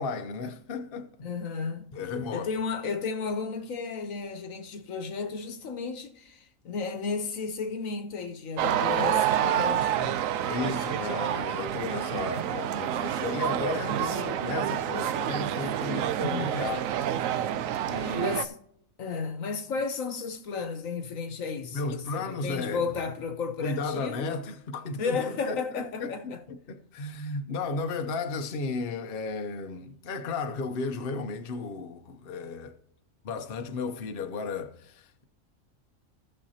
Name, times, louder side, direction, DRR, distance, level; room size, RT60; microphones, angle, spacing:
voice 1, 0.0-1.1 1.9-2.5 10.4-16.9 17.8-18.4 21.7-22.8 23.6-32.8 33.2-35.2, left 3 dB, 50° left, 0.9 m, -34 dB
voice 2, 1.2-1.9 2.3-10.2 16.2-16.5 18.2-18.5 19.0-24.4 25.0-26.4, left 5 dB, 75° left, 1.4 m, -33 dB
sound 1, 8.6-18.4, right 10 dB, 75° right, 1.0 m, -28 dB
17.5 x 6.5 x 2.8 m
omnidirectional pair, 1.4 m